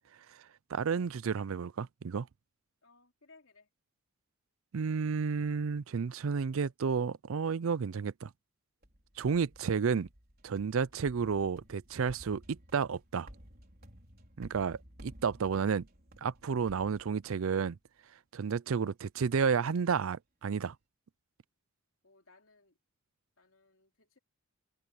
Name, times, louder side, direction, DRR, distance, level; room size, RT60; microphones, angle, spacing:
voice 1, 0.7-2.3 4.7-8.3 9.2-10.1 10.4-13.3 14.4-15.9 16.2-17.8 18.3-20.7, right 6 dB, 70° right, 0.4 m, -31 dB
voice 2, 2.8-3.7 22.0-22.8 23.4-24.2, left 3 dB, 70° left, 3.5 m, -62 dB
sound 1, 8.8-17.6, equal, 45° right, 4.6 m, -55 dB
head